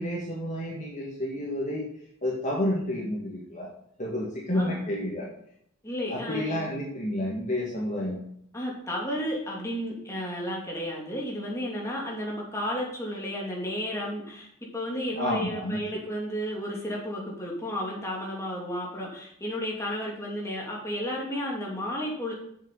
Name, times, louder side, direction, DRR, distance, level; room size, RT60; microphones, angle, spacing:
voice 1, 0.0-1.9 2.2-3.7 4.0-5.3 6.1-8.2 15.2-15.8, left 1 dB, 35° left, -3 dB, 1.9 m, -30 dB
voice 2, 5.8-6.7 8.5-14.5 14.7-22.3, equal, 15° left, -3 dB, 2.6 m, -33 dB
7.8 x 7.6 x 5.4 m, 0.71 s
head